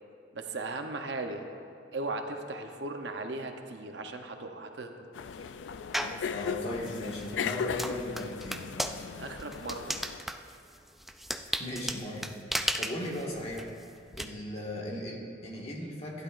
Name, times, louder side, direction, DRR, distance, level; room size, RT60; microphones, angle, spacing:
voice 1, 0.3-1.5 1.9-4.9 9.2-10.0, right 2 dB, 70° right, 5 dB, 0.8 m, -37 dB
sound 1, 5.1-10.2, left 6 dB, 90° left, 0.4 m, -37 dB
sound 2, 5.9-6.3 6.8-14.2, equal, ahead, 0.3 m, -35 dB
voice 2, 6.3-8.7 11.5-13.7 14.1-16.2, left 1 dB, 35° left, -2 dB, 1.6 m, -37 dB
15.5 x 11.0 x 2.5 m, 2.5 s
head